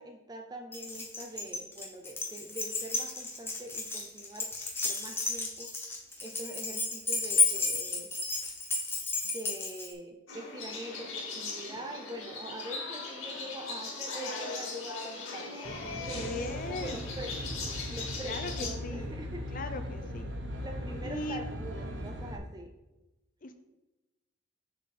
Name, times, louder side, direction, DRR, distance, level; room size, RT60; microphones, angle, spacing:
voice 1, 0.0-4.5 4.8-5.7 6.2-8.1 9.2-17.3 17.9-19.6 20.6-22.7, right 1 dB, 20° right, 4 dB, 0.5 m, -44 dB
Keys jangling, 0.7-9.9, left 3 dB, 10° left, 0.9 m, -32 dB
sound 1, 10.3-18.7, left 4 dB, 90° left, 2.0 m, -39 dB
voice 2, 11.7-12.0 16.1-17.0 18.2-19.2 19.5-20.3 21.0-21.5 23.4-23.5, left 2 dB, 40° left, 7 dB, 0.6 m, -39 dB
Aircraft, 15.6-22.4, equal, 65° right, 0.9 m, -39 dB
6.8 x 6.4 x 4.2 m, 1.0 s
head